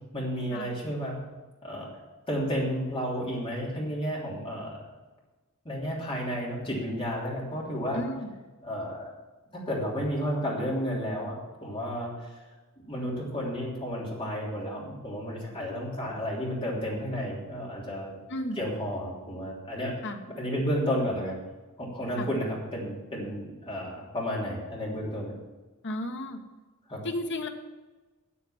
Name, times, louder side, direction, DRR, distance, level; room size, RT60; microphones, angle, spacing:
voice 1, 0.1-1.2 1.6-1.9 2.3-4.8 5.6-8.0 8.6-9.1 9.5-12.3 12.9-18.1 18.6-19.9 20.4-21.4 21.8-25.4 26.9-27.0, equal, 25° left, -4 dB, 3.1 m, -32 dB
voice 2, 7.9-8.3 18.3-18.6 20.0-20.2 22.2-22.3 25.8-26.4 27.0-27.5, left 1 dB, 55° left, 5 dB, 1.3 m, -33 dB
9.0 x 8.5 x 7.2 m, 1.2 s
head